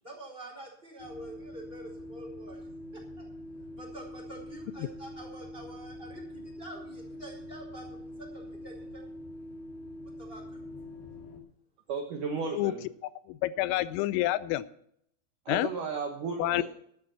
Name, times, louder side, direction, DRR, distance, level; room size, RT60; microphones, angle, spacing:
voice 1, 0.0-3.2 3.7-9.1 10.2-10.6, right 1 dB, 10° right, 0 dB, 3.6 m, -47 dB
sound 1, 1.0-11.4, left 1 dB, 60° left, 3.8 m, -44 dB
voice 2, 11.9-12.8 15.5-16.6, right 5 dB, 85° right, 3 dB, 1.8 m, -34 dB
voice 3, 13.3-14.7 15.5-15.7 16.4-16.6, left 16 dB, 85° left, 16 dB, 3.2 m, -28 dB
12.5 x 9.8 x 5.8 m, 0.67 s
omnidirectional pair, 6.0 m